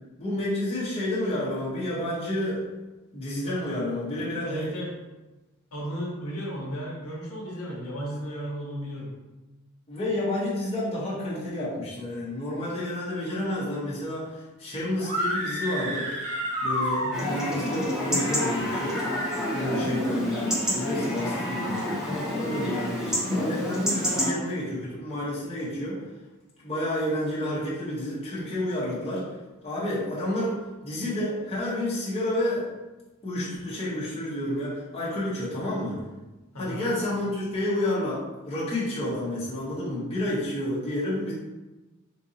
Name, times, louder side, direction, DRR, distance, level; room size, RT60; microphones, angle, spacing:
voice 1, 0.2-2.6 3.1-4.7 9.9-16.0 16.6-19.0 19.5-20.2 20.7-26.0 26.6-29.4 29.6-30.5 30.8-32.6 33.2-36.0 36.6-41.3, left 1 dB, 25° left, -8 dB, 1.1 m, -30 dB
voice 2, 4.4-4.9 5.7-9.1 17.0-17.3 36.5-36.9, equal, 85° left, -5 dB, 1.1 m, -34 dB
sound 1, 15.0-17.6, equal, 35° right, 0.7 m, -29 dB
Chatter / Livestock farm animals working animals / Chirp tweet, 17.1-24.3, left 1 dB, 5° right, 0.7 m, -28 dB
3.9 x 2.6 x 2.7 m, 1.1 s
head